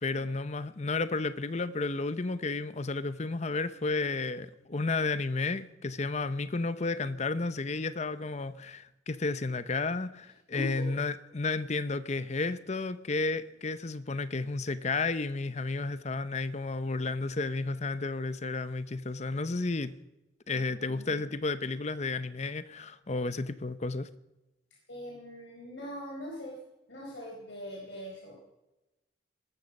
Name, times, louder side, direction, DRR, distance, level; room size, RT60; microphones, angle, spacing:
voice 1, 0.0-19.9 20.5-24.1, left 3 dB, 40° left, 14 dB, 0.7 m, -32 dB
voice 2, 10.5-10.9 20.5-21.3 24.9-26.6 26.9-28.3, left 1 dB, 75° left, -2 dB, 4.4 m, -42 dB
20.0 x 13.0 x 5.3 m, 0.99 s
head